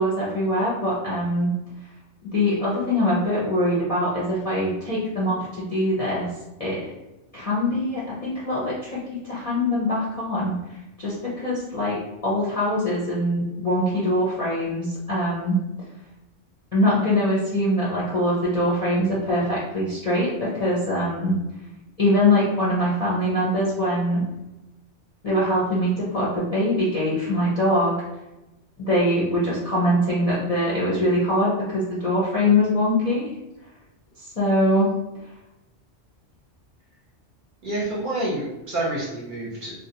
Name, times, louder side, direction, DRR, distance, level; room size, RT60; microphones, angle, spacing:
voice 1, 0.0-1.5 2.3-6.3 6.6-6.8 7.3-10.5 11.0-12.0 12.2-15.6 16.7-21.4 22.0-24.2 25.2-27.9 28.8-33.3 34.2-34.9, left 1 dB, 40° left, -8 dB, 0.5 m, -23 dB
voice 2, 37.6-39.7, right 1 dB, 50° right, -5 dB, 0.7 m, -28 dB
2.4 x 2.2 x 2.7 m, 0.99 s
omnidirectional pair, 1.2 m